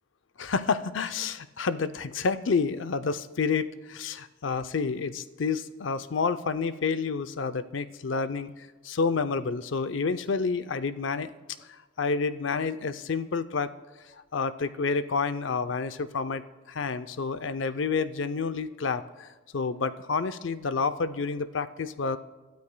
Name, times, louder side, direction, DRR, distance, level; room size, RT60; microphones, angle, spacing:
voice 1, 0.4-11.3 12.0-13.7 14.3-16.4 16.7-22.2, left 4 dB, 70° left, 12 dB, 0.5 m, -29 dB
27.5 x 13.0 x 2.2 m, 1.2 s
head